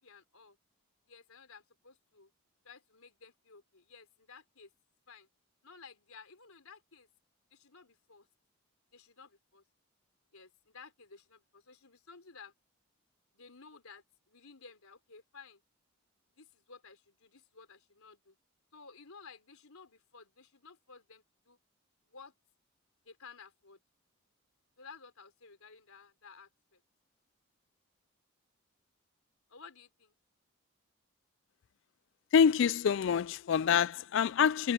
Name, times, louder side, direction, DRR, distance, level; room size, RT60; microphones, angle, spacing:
voice 1, 0.0-0.6 1.1-2.3 2.6-4.7 5.1-5.3 5.6-7.1 7.5-8.3 8.9-9.6 10.3-12.5 13.3-15.6 16.3-18.4 18.7-21.6 22.1-22.3 23.0-23.8 24.8-26.8 29.5-30.2, left 5 dB, 80° left, 3.8 m, -55 dB
voice 2, 32.3-34.7, left 7 dB, 55° left, 0.3 m, -26 dB
head